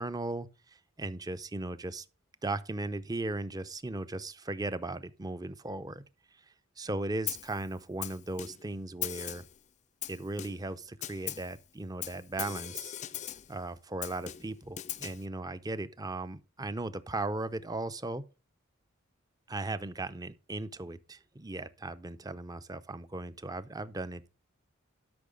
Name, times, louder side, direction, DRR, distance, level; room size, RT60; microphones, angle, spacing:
voice 1, 0.0-2.1 2.4-6.0 6.3-6.4 6.8-9.4 10.1-12.9 13.5-18.2 19.5-24.3, right 2 dB, 20° right, 0.6 m, -37 dB
Snare drum, 7.3-7.6 8.0-8.7 9.0-9.6 10.0-10.7 11.0-11.5 12.0-13.5 14.0-15.3, left 12 dB, 35° left, 0.4 m, -39 dB
12.5 x 5.7 x 5.2 m
head